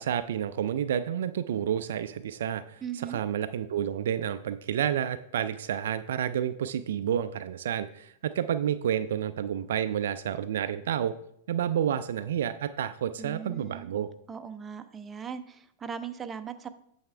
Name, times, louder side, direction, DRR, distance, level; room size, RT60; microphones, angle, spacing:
voice 1, 0.0-11.1 11.5-14.1, right 9 dB, 65° right, 12 dB, 0.3 m, -30 dB
voice 2, 2.8-3.2 13.2-13.9 14.3-16.7, right 7 dB, 20° right, 9 dB, 0.6 m, -39 dB
8.8 x 6.4 x 3.3 m, 0.70 s
figure-of-eight pair, 95°, 0 cm